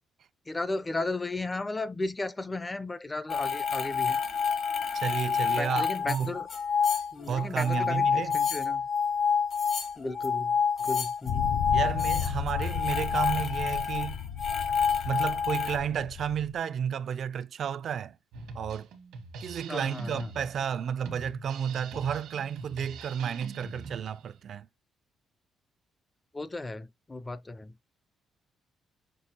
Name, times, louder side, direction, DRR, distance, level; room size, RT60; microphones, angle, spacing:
voice 1, 0.5-4.2 5.6-6.5 7.1-8.8 10.0-11.7 19.7-20.3 26.3-27.7, left 2 dB, 20° left, 0.4 m, -35 dB
sound 1, 3.3-15.8, left 6 dB, 55° left, 1.2 m, -28 dB
voice 2, 4.9-6.3 7.3-8.4 11.7-14.2 15.0-18.2 18.5-18.9 19.4-24.7, right 8 dB, 60° right, 0.3 m, -32 dB
sound 2, 11.3-16.5, left 9 dB, 85° left, 0.5 m, -34 dB
Drum kit, 18.3-24.3, right 4 dB, 90° right, 1.2 m, -43 dB
6.0 x 2.7 x 2.8 m
cardioid pair, 90°, 0 cm